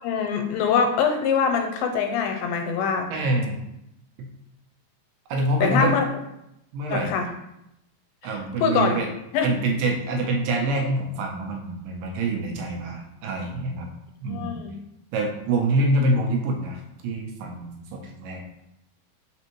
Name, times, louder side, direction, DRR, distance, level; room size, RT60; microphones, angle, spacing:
voice 1, 0.0-3.1 5.6-6.0 6.9-7.3 8.2-8.3 8.6-9.0 9.3-9.5 14.3-14.8, left 6 dB, 90° left, 4 dB, 2.4 m, -23 dB
voice 2, 3.1-3.6 4.2-4.3 5.3-5.9 6.7-7.1 8.2-9.1 9.4-13.9 14.2-14.6 15.1-18.4, right 2 dB, 80° right, 1 dB, 2.3 m, -26 dB
5.2 x 3.4 x 3.0 m, 0.84 s
omnidirectional pair, 4.1 m